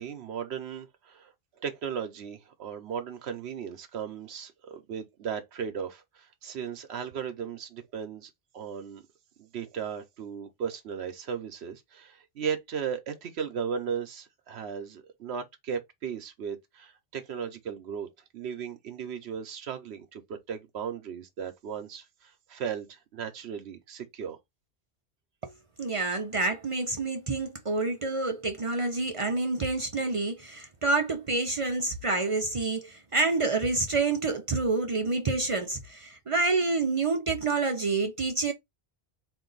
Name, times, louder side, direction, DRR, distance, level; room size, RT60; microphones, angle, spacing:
voice 1, 0.0-9.0 9.4-18.1 18.3-24.4, right 7 dB, 90° right, 1.0 m, -36 dB
voice 2, 25.8-38.5, right 3 dB, 40° right, 0.5 m, -28 dB
3.9 x 2.6 x 3.8 m
omnidirectional pair, 1.1 m